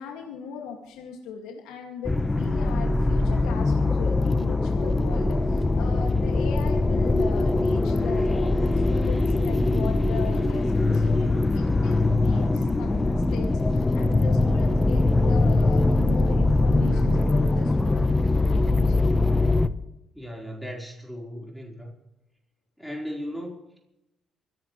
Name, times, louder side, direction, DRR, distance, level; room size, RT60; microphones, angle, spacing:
voice 1, 0.0-18.1 18.5-19.1, left 7 dB, 85° left, 1 dB, 2.2 m, -38 dB
sound 1, 2.0-19.7, left 2 dB, 20° left, 1.0 m, -22 dB
voice 2, 20.1-21.9 22.8-23.9, equal, ahead, -1 dB, 4.3 m, -37 dB
26.5 x 11.0 x 3.2 m, 0.87 s
supercardioid pair, 60°, 0 cm